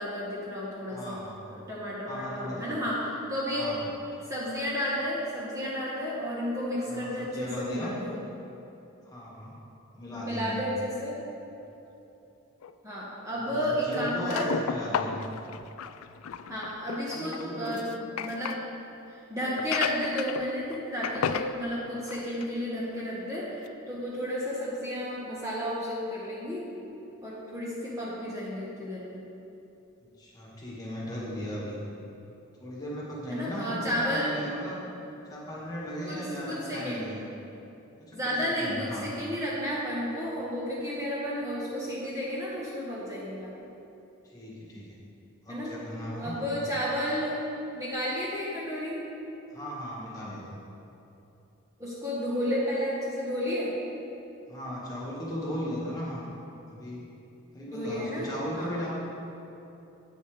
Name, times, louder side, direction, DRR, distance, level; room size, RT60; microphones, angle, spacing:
voice 1, 0.0-3.8 4.3-8.1 10.2-11.2 12.8-14.5 16.5-17.8 18.1-18.6 19.3-26.6 27.2-29.2 33.3-34.4 36.1-36.2 36.5-37.1 38.1-43.7 45.5-45.7 46.2-47.4 47.7-49.0 51.8-53.7 57.7-58.3 58.5-58.7, equal, 15° right, -7 dB, 1.2 m, -32 dB
voice 2, 0.9-1.4 2.1-2.8 3.6-3.9 4.1-4.2 6.9-8.0 9.0-9.5 10.0-10.6 13.4-15.3 17.1-17.8 30.2-31.8 32.6-34.8 35.3-37.2 38.0-39.1 44.2-45.0 45.4-46.7 49.5-50.4 54.5-56.3 56.7-57.1 57.5-58.9, equal, 20° left, -6 dB, 1.7 m, -37 dB
sound 1, 12.6-12.7 13.9-18.6 19.6-20.8 21.0-21.5 22.0-22.6 23.0-23.1 23.7-23.8, left 7 dB, 85° left, 0.4 m, -34 dB
9.8 x 8.6 x 3.3 m, 2.9 s
head